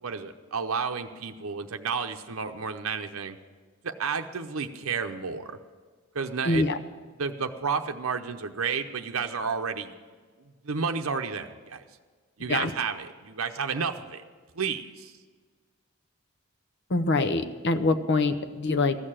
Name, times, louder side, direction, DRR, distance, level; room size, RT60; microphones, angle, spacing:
voice 1, 0.0-3.4 3.8-5.6 6.1-6.7 7.2-9.9 10.6-11.8 12.4-14.2 14.5-15.1, right 5 dB, 75° right, 6 dB, 0.7 m, -31 dB
voice 2, 6.5-6.8 12.5-12.7 16.9-19.0, left 3 dB, 55° left, 9 dB, 0.7 m, -24 dB
14.5 x 6.7 x 8.8 m, 1.5 s
head